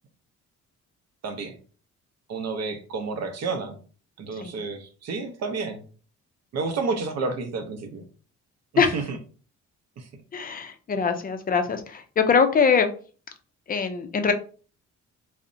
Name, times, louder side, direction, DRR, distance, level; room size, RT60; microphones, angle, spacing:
voice 1, 1.2-1.6 2.3-3.8 4.2-5.8 6.5-8.0 8.7-9.2 10.0-10.1, right 4 dB, 60° right, 7 dB, 0.6 m, -30 dB
voice 2, 10.3-12.9 13.7-14.3, left 5 dB, 30° left, 7 dB, 0.4 m, -22 dB
2.6 x 2.0 x 2.5 m, 0.39 s
cardioid pair, 90°, 30 cm